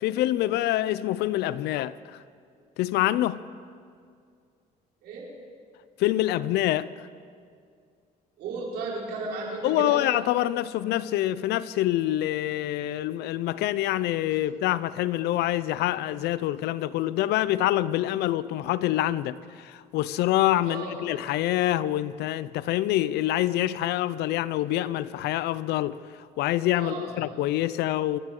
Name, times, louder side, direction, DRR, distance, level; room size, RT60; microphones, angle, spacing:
voice 1, 0.0-2.2 2.8-3.4 6.0-6.9 9.6-26.0 26.4-28.2, left 14 dB, 80° left, 0.5 m, -26 dB
voice 2, 8.4-10.0 20.6-21.0 26.7-27.1, right 3 dB, 80° right, 4.8 m, -34 dB
26.0 x 12.5 x 3.8 m
cardioid pair, 110°, 17 cm